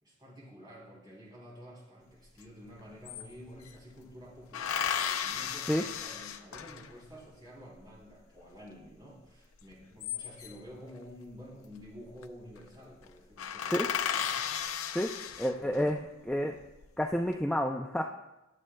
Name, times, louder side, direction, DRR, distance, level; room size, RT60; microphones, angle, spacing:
voice 1, 0.0-14.8 15.5-16.1, equal, 20° right, -5 dB, 3.2 m, -50 dB
sound 1, 2.4-2.5 2.7-3.8 4.5-7.1 9.7-10.7 11.9-12.2 12.6-12.7 13.0-13.1 13.4-15.9 16.5-17.2, left 8 dB, 75° left, 0.5 m, -35 dB
voice 2, 15.4-16.5 17.0-18.0, equal, 5° left, 1 dB, 0.4 m, -29 dB
21.5 x 7.4 x 2.2 m, 1.0 s
head